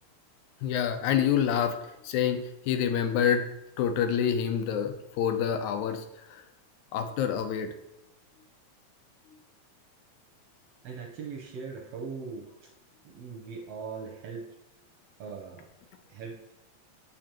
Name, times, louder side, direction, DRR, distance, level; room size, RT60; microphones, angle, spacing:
voice 1, 0.6-1.8 2.0-3.5 3.8-6.4 6.9-7.7, left 8 dB, 80° left, 8 dB, 2.0 m, -27 dB
voice 2, 10.8-12.7 13.0-14.5 15.2-15.7 16.1-16.4, right 5 dB, 70° right, 1 dB, 1.5 m, -40 dB
7.4 x 5.1 x 3.0 m, 0.92 s
omnidirectional pair, 3.4 m